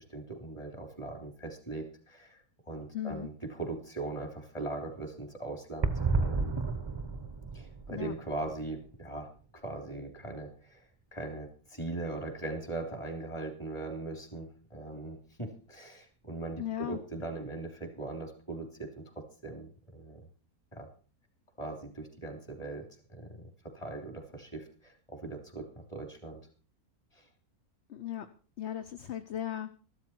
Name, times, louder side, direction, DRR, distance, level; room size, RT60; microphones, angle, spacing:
voice 1, 0.1-5.9 6.2-6.6 7.5-20.2 20.7-20.9 21.6-22.8 23.1-26.4 27.1-27.3, right 2 dB, 20° left, 4 dB, 3.3 m, -40 dB
voice 2, 2.9-3.3 7.9-8.1 16.6-17.0 27.9-28.3 28.6-29.7, left 11 dB, 55° left, 9 dB, 1.0 m, -36 dB
sound 1, 5.8-9.6 9.9-10.0 10.1-10.2, right 4 dB, 25° right, 0.7 m, -32 dB
14.0 x 12.5 x 4.5 m, 0.40 s
omnidirectional pair, 1.6 m